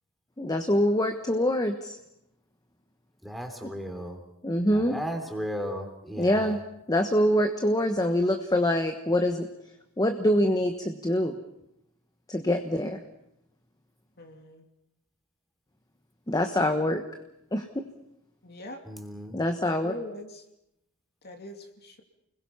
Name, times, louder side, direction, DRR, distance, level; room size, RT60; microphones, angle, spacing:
voice 1, 0.4-2.0 4.4-5.0 6.2-6.6 6.9-9.5 10.0-11.4 12.3-13.0 16.3-17.0 17.5-17.9 19.3-19.9, left 1 dB, 20° left, 5 dB, 1.2 m, -25 dB
voice 2, 3.2-4.2 4.7-6.6 18.8-19.4, equal, ahead, 5 dB, 3.3 m, -35 dB
voice 3, 14.2-14.7 18.4-18.8 19.7-20.4 21.2-22.0, left 2 dB, 50° left, 4 dB, 2.7 m, -42 dB
30.0 x 21.5 x 5.7 m, 0.82 s
head